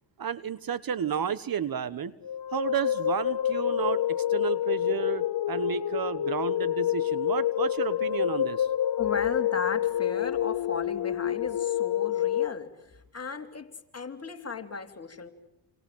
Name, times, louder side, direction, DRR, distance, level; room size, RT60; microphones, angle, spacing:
voice 1, 0.2-2.1 2.5-8.7, right 8 dB, 45° right, 18 dB, 1.3 m, -32 dB
sound 1, 2.2-12.5, left 11 dB, 55° left, 1.1 m, -28 dB
voice 2, 9.0-15.3, left 5 dB, 30° left, 6 dB, 3.4 m, -36 dB
28.0 x 27.0 x 7.9 m, 0.85 s
supercardioid pair, 70°, 47 cm